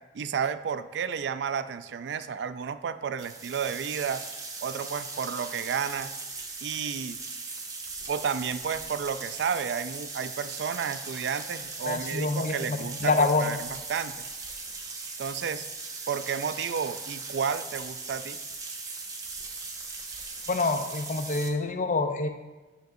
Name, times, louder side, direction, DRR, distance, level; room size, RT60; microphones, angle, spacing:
voice 1, 0.1-4.3 4.6-6.1 6.6-7.2 8.1-14.1 15.2-15.7 16.1-18.4, right 7 dB, 70° right, 12 dB, 0.3 m, -31 dB
sound 1, 3.2-21.5, right 4 dB, 20° right, 0.7 m, -39 dB
voice 2, 11.9-13.5 20.5-22.3, left 3 dB, 45° left, 7 dB, 0.6 m, -26 dB
9.1 x 6.4 x 2.6 m, 1.2 s
head